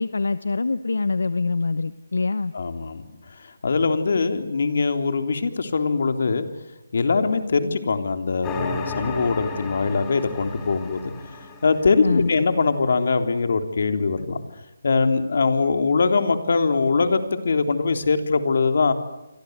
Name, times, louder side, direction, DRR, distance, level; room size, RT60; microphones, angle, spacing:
voice 1, 0.0-2.5 12.0-12.3, left 3 dB, 85° left, 14 dB, 1.0 m, -24 dB
voice 2, 2.5-3.0 3.6-6.5 6.9-11.1 11.6-14.4 14.8-18.9, left 4 dB, 60° left, 7 dB, 3.5 m, -22 dB
sound 1, 8.4-12.9, left 3 dB, 10° left, 3.6 m, -34 dB
29.0 x 25.0 x 8.2 m, 0.92 s
hypercardioid pair, 165°, 0 cm